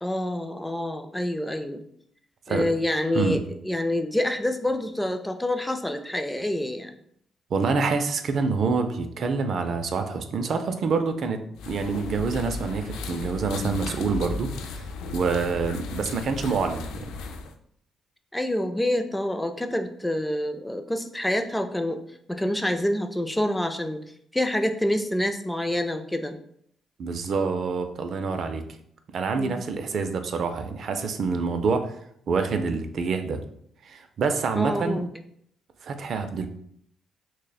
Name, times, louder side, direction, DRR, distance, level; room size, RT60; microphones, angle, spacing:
voice 1, 0.0-1.8 2.5-6.9 18.3-22.0 22.3-24.0 24.3-26.4 29.3-29.6 34.6-35.1, left 1 dB, 10° left, 6 dB, 0.4 m, -27 dB
voice 2, 7.5-14.5 15.1-17.1 27.0-28.6 29.1-31.9 32.3-33.4 33.8-35.0 35.8-36.5, right 4 dB, 60° right, 7 dB, 0.4 m, -26 dB
sound 1, 11.6-17.5, left 4 dB, 90° left, 0.3 m, -35 dB
6.2 x 2.1 x 2.3 m, 0.68 s
cardioid pair, 90°, 0 cm